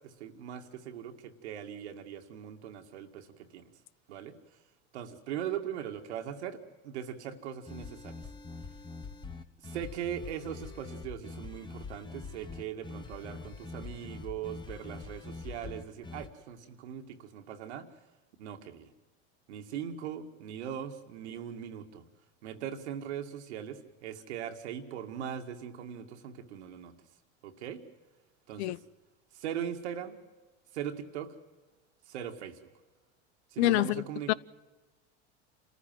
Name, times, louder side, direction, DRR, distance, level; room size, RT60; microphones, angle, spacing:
voice 1, 0.0-3.3 3.5-3.6 4.1-4.4 4.9-8.1 9.6-17.9 18.4-18.9 19.5-22.0 22.4-26.9 27.4-27.8 28.5-28.8 29.4-30.2 30.7-31.3 32.1-32.6 33.5-34.3, right 9 dB, 85° right, 2.2 m, -40 dB
sound 1, 7.7-16.3, left 4 dB, 15° left, 1.4 m, -44 dB
voice 2, 33.6-34.3, left 17 dB, 75° left, 0.7 m, -27 dB
27.5 x 14.5 x 7.7 m
supercardioid pair, 120°, 33 cm